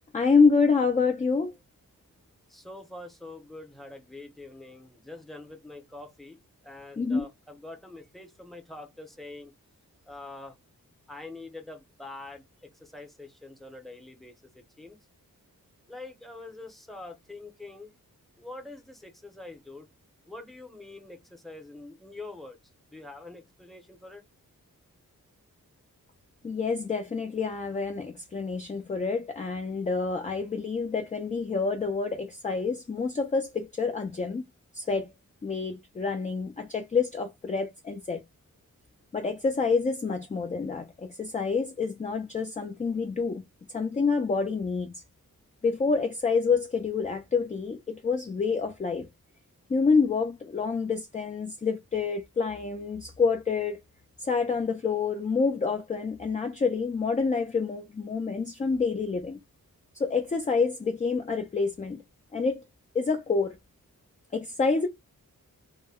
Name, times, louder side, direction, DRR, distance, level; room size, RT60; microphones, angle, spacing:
voice 1, 0.1-1.5 7.0-7.2 26.4-34.4 34.7-35.1 35.4-38.2 39.1-43.4 43.7-45.0 45.6-49.1 49.7-53.8 54.2-59.4 59.9-62.0 62.3-62.6 62.9-63.6 64.3-64.9, left 4 dB, 25° left, 0.4 m, -27 dB
voice 2, 2.5-9.5 10.1-10.6 11.1-15.0 15.9-17.9 18.4-19.9 20.2-22.6 22.9-24.2, left 2 dB, ahead, 0.7 m, -45 dB
2.1 x 2.1 x 3.4 m
wide cardioid pair, 95°, 34 cm